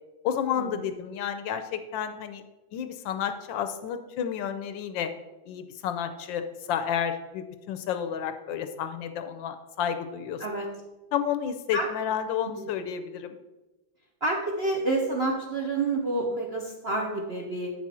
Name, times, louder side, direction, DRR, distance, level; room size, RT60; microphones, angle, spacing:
voice 1, 0.2-2.4 2.7-5.1 5.5-10.4 11.1-13.4, left 8 dB, 80° left, 9 dB, 1.3 m, -31 dB
voice 2, 10.4-10.7 11.7-11.9 12.4-12.7 14.2-17.7, right 2 dB, 55° right, -1 dB, 0.7 m, -29 dB
8.7 x 6.1 x 4.2 m, 1.1 s
omnidirectional pair, 2.1 m